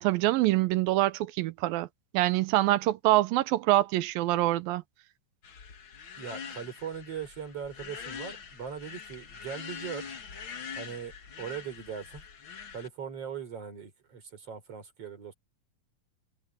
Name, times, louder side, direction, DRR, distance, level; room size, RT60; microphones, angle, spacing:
voice 1, 0.0-1.9 2.1-4.8, right 16 dB, 85° right, 2.6 m, -25 dB
sound 1, 5.4-12.9, left 6 dB, 40° left, 2.1 m, -44 dB
voice 2, 6.2-10.1 10.8-12.2 12.7-15.3, right 7 dB, 45° right, 5.0 m, -40 dB
omnidirectional pair, 4.1 m